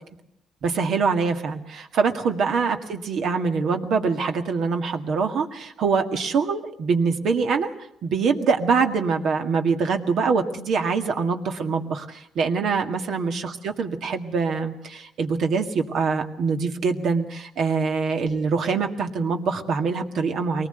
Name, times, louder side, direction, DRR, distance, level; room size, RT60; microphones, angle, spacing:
voice 1, 0.6-7.7 8.0-20.7, right 5 dB, 70° right, 5 dB, 1.9 m, -24 dB
23.0 x 19.5 x 8.0 m, 0.72 s
cardioid pair, 90°, 0 cm